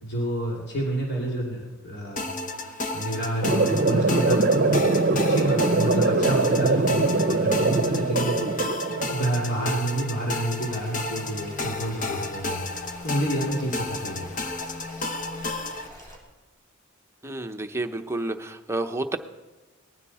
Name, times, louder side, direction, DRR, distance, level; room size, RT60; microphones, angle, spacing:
voice 1, 0.0-2.3 2.6-4.9 5.1-8.4 9.0-14.2, right 1 dB, 55° left, -3 dB, 2.9 m, -29 dB
sound 1, 2.2-15.9, left 2 dB, 40° left, 0.9 m, -32 dB
sound 2, 3.4-9.4, right 3 dB, 45° right, 0.7 m, -22 dB
sound 3, 10.6-16.2, equal, 20° left, 3.7 m, -47 dB
voice 2, 17.2-19.2, right 2 dB, 15° right, 5 dB, 0.8 m, -30 dB
20.0 x 15.0 x 4.2 m, 1.2 s
head